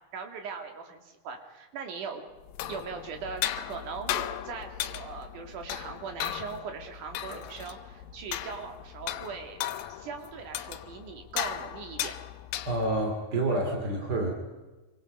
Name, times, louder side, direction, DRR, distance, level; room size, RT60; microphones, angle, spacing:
voice 1, 0.1-2.2 2.7-9.6 9.9-12.2, right 5 dB, 65° right, 4 dB, 3.6 m, -40 dB
sound 1, 2.4-13.1, left 12 dB, 90° left, 2.6 m, -36 dB
voice 2, 12.6-14.3, right 2 dB, 30° right, 2 dB, 3.0 m, -28 dB
26.5 x 24.5 x 5.4 m, 1.2 s
omnidirectional pair, 3.9 m